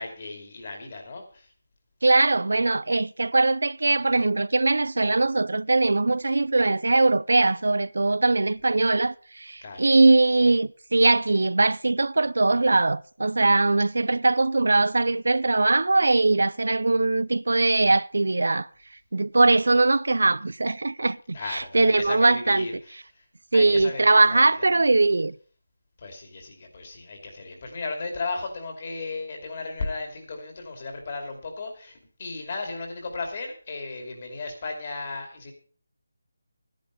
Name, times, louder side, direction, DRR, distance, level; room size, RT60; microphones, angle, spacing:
voice 1, 0.0-1.5 9.6-9.9 21.3-23.2 23.5-24.7 26.0-35.5, left 3 dB, 30° left, 2.6 m, -35 dB
voice 2, 2.0-18.7 19.1-22.7 23.5-25.3, right 2 dB, 75° right, 0.5 m, -21 dB
11.0 x 10.5 x 5.3 m
figure-of-eight pair, 175°, 0 cm